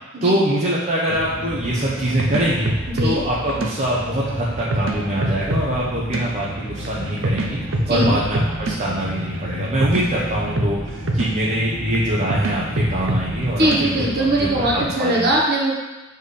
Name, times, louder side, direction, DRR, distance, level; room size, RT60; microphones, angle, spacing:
voice 1, 0.2-2.7 3.0-7.6 7.9-14.1 14.4-15.2, right 1 dB, 35° right, -6 dB, 0.8 m, -23 dB
sound 1, 1.1-14.9, left 1 dB, 35° left, 0.7 m, -34 dB
sound 2, 1.1-14.8, right 1 dB, 70° right, 0.7 m, -27 dB
voice 2, 2.9-3.2 7.9-8.2 13.6-15.7, right 1 dB, 50° right, -2 dB, 1.1 m, -20 dB
7.0 x 4.5 x 3.3 m, 1.1 s
head